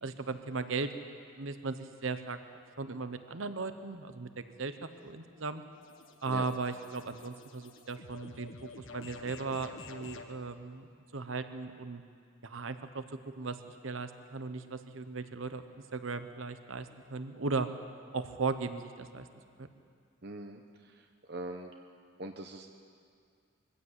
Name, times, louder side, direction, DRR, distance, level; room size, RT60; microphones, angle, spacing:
voice 1, 0.0-1.0 1.4-2.4 2.8-5.6 6.2-12.0 12.4-13.0 13.4-13.6 13.8-17.7 18.1-19.3 19.6-19.7, right 4 dB, 75° right, 10 dB, 1.0 m, -37 dB
sound 1, 4.9-10.3, left 4 dB, 75° left, 1.3 m, -50 dB
voice 2, 20.2-21.0 21.3-21.7 22.2-22.7, right 2 dB, 50° right, 4 dB, 0.9 m, -42 dB
23.0 x 15.5 x 8.2 m, 2.3 s
head